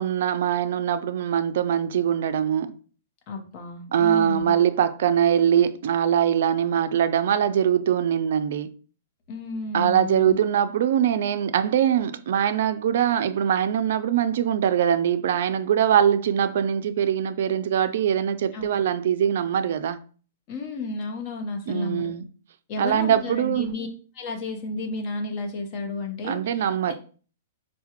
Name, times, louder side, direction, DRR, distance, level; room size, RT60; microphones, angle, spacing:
voice 1, 0.0-2.7 3.9-8.7 9.7-20.0 21.7-22.3 22.8-23.7 26.2-26.9, right 9 dB, 65° right, 0.3 m, -22 dB
voice 2, 3.3-4.5 9.3-10.4 18.5-18.8 20.5-22.1 22.7-23.9 24.1-26.7, left 3 dB, 35° left, 0.8 m, -32 dB
4.7 x 2.1 x 2.9 m
hypercardioid pair, 155°, 0 cm